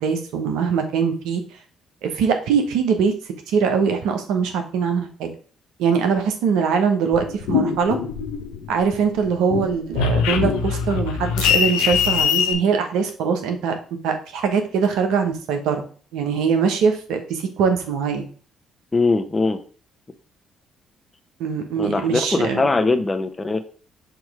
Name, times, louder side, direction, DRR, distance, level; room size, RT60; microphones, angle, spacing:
voice 1, 0.0-1.4 2.0-3.1 3.5-5.3 5.8-8.0 8.7-15.8 16.1-18.3 21.4-22.7, right 6 dB, 75° right, 5 dB, 1.1 m, -22 dB
sound 1, 7.1-8.8 9.2-12.5, left 7 dB, 80° left, 0.7 m, -22 dB
voice 2, 18.9-19.6 21.8-23.6, left 3 dB, 25° left, 8 dB, 0.9 m, -21 dB
6.5 x 3.1 x 4.8 m, 0.42 s
hypercardioid pair, 55°, 0 cm